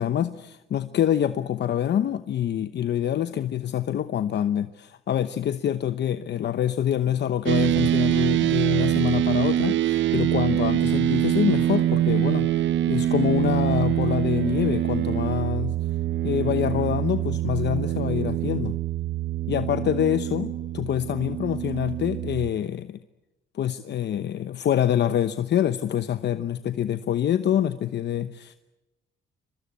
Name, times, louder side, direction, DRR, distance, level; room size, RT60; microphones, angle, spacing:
voice 1, 0.0-12.5 12.9-15.7 16.2-18.8 19.5-23.0 23.5-28.6, left 10 dB, 60° left, 11 dB, 0.9 m, -26 dB
sound 1, 7.5-22.5, right 12 dB, 70° right, 0.8 m, -24 dB
24.5 x 23.5 x 8.3 m, 1.0 s
cardioid pair, 90°, 20 cm